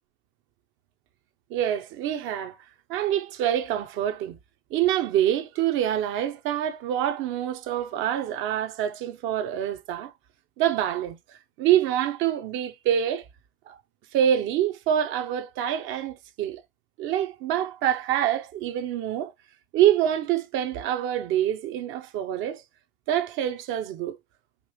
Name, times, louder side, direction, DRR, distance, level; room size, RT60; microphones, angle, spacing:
voice 1, 1.5-2.6 2.9-4.4 4.7-10.1 10.6-13.3 13.7-13.8 14.1-16.6 17.0-19.3 19.7-22.6 23.1-24.2, right 11 dB, 40° right, 0.7 m, -26 dB
5.2 x 2.5 x 2.9 m
supercardioid pair, 130°, 32 cm